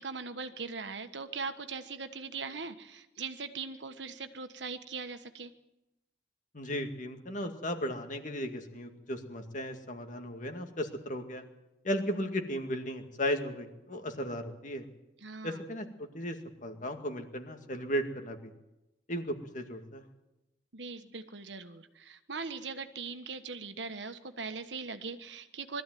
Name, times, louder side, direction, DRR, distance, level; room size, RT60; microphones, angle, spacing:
voice 1, 0.0-5.5 15.2-15.6 20.7-25.8, right 4 dB, 75° right, 9 dB, 1.3 m, -40 dB
voice 2, 6.5-11.4 11.8-14.8 15.4-18.5 19.1-20.0, equal, 45° left, 6 dB, 2.1 m, -35 dB
21.5 x 14.0 x 9.3 m, 0.95 s
head